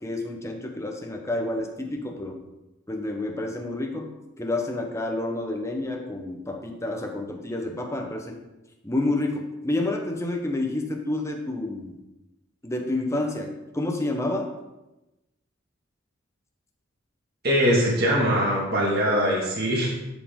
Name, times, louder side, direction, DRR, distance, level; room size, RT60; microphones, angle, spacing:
voice 1, 0.0-2.4 2.9-4.1 4.4-8.4 8.8-12.0 12.6-14.5, left 2 dB, 15° left, 2 dB, 1.0 m, -29 dB
voice 2, 17.4-20.0, equal, 50° right, -4 dB, 2.0 m, -22 dB
10.5 x 5.1 x 3.7 m, 0.99 s
head